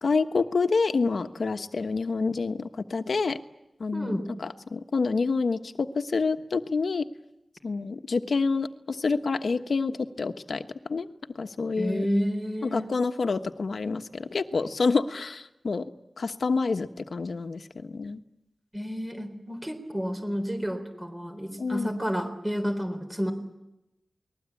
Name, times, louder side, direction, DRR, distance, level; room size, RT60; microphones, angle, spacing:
voice 1, 0.0-3.4 3.8-7.1 7.6-11.1 11.3-12.1 12.6-15.9 16.2-18.2 21.6-21.9, left 4 dB, 75° left, 8 dB, 1.2 m, -28 dB
voice 2, 3.9-4.3 11.8-12.9 18.7-23.3, equal, 20° right, 5 dB, 3.9 m, -30 dB
29.0 x 20.5 x 8.5 m, 0.93 s
wide cardioid pair, 90°, 0 cm